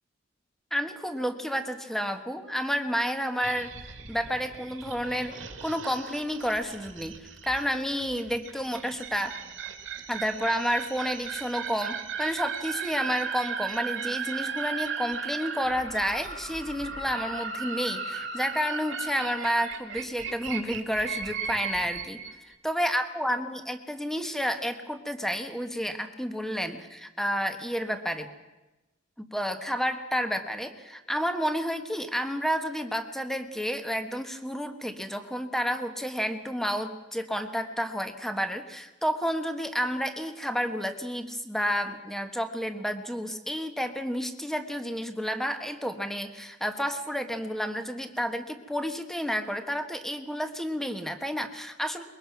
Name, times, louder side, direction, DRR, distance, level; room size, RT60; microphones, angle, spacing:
voice 1, 0.7-9.4 10.1-22.2 22.6-28.3 29.2-52.0, equal, ahead, 7 dB, 1.4 m, -30 dB
sound 1, 3.4-22.3, right 6 dB, 85° right, 2.4 m, -36 dB
23.0 x 22.0 x 6.0 m, 1.1 s
head